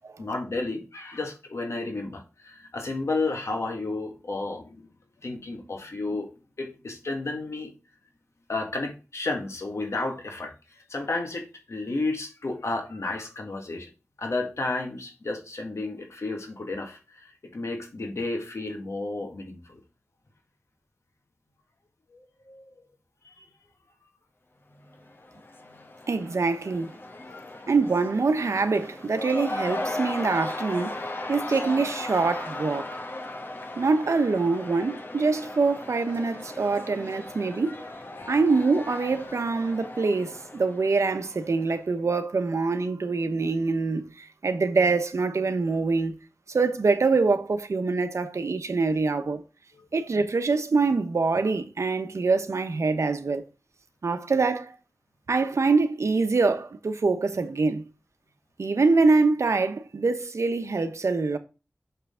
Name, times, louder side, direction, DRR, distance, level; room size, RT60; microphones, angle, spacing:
voice 1, 0.2-4.9 5.2-6.3 6.6-7.7 8.5-10.5 10.9-13.9 14.2-19.8 22.5-22.6 23.4-23.5 27.3-27.4, left 2 dB, 75° left, 1.8 m, -32 dB
Cheering / Crowd, 24.9-41.8, left 2 dB, 45° left, 1.5 m, -37 dB
voice 2, 26.1-26.9 27.7-33.0 33.8-37.8 38.3-46.2 46.5-49.4 49.9-53.4 54.0-54.8 55.3-57.9 58.6-61.4, right 4 dB, 80° right, 0.9 m, -24 dB
6.7 x 5.7 x 3.7 m
wide cardioid pair, 70°, 5 cm